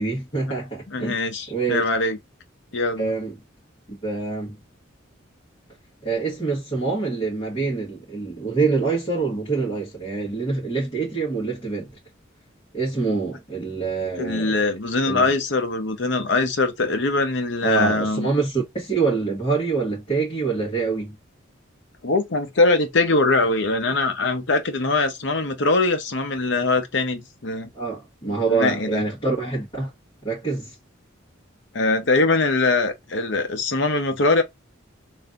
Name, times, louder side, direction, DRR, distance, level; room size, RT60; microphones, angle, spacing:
voice 1, 0.0-1.2 1.5-1.8 3.0-3.4 3.9-4.6 6.0-11.9 12.7-14.6 15.0-15.3 17.6-21.2 27.7-29.9 30.2-30.7, right 4 dB, 30° left, 1.6 m, -25 dB
voice 2, 0.9-2.2 2.7-3.1 14.2-18.3 22.0-27.7 28.2-29.0 31.7-34.4, left 3 dB, 60° left, 0.8 m, -22 dB
3.2 x 2.6 x 3.6 m
head